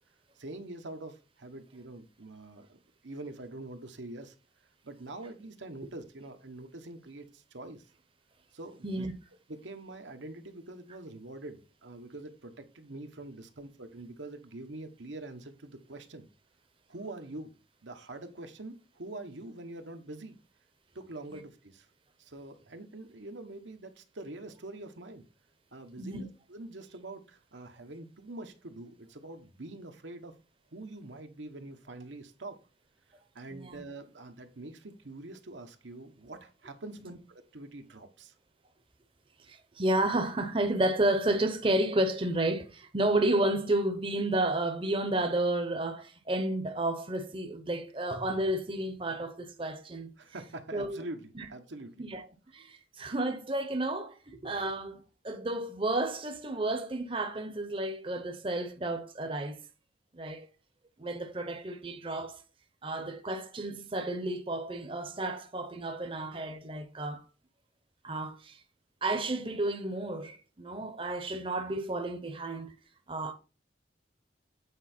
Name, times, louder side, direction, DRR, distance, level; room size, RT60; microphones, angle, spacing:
voice 1, 0.4-4.3 4.8-7.8 8.5-9.1 9.5-16.3 16.9-17.5 17.8-20.4 20.9-21.9 22.2-25.2 25.7-30.3 30.7-32.6 33.3-38.3 50.2-52.0, right 2 dB, 80° right, 1.2 m, -45 dB
voice 2, 33.5-33.8 39.4-50.1 50.7-51.0 51.4-51.5 52.0-52.2 52.5-59.6 60.1-60.5 61.0-62.4 62.8-67.3 68.0-68.6 69.0-72.7 73.1-73.3, right 1 dB, 30° right, 0.8 m, -31 dB
8.7 x 4.6 x 4.3 m
head